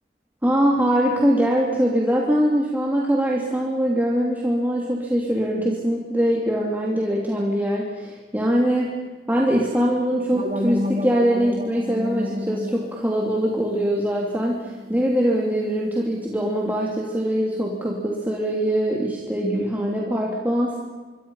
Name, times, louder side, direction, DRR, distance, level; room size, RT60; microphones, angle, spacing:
voice 1, 0.4-9.0 9.3-20.8, equal, 10° right, -3 dB, 3.0 m, -22 dB
sound 1, 10.3-15.2, left 1 dB, 40° right, 3.3 m, -31 dB
27.0 x 24.0 x 5.8 m, 1.4 s
head